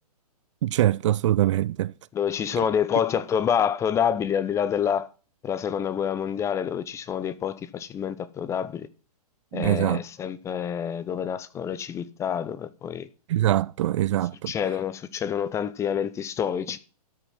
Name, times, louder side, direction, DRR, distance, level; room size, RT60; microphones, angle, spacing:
voice 1, 0.6-1.9 9.5-10.0 13.3-14.5, right 13 dB, 50° right, 0.4 m, -23 dB
voice 2, 2.1-5.1 5.4-8.9 9.5-13.1 14.5-16.8, left 8 dB, 15° left, 0.6 m, -27 dB
13.0 x 5.9 x 5.5 m
hypercardioid pair, 130°, 20 cm